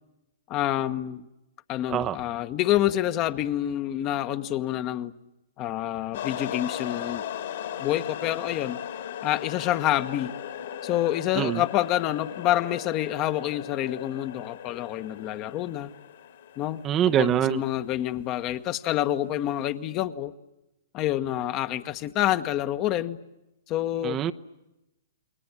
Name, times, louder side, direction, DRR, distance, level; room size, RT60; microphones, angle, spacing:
voice 1, 0.5-1.3 1.7-5.1 5.6-7.2 7.8-8.8 9.2-10.4 10.8-15.9 16.6-16.8 17.2-20.3 20.9-23.2 23.7-24.2, left 13 dB, 35° left, 10 dB, 1.2 m, -27 dB
sound 1, 6.1-17.6, left 9 dB, 60° left, 3.0 m, -37 dB
voice 2, 16.8-17.6 24.0-24.3, right 10 dB, 25° right, 10 dB, 0.9 m, -24 dB
30.0 x 21.5 x 8.7 m, 0.94 s
figure-of-eight pair, 115°, 0 cm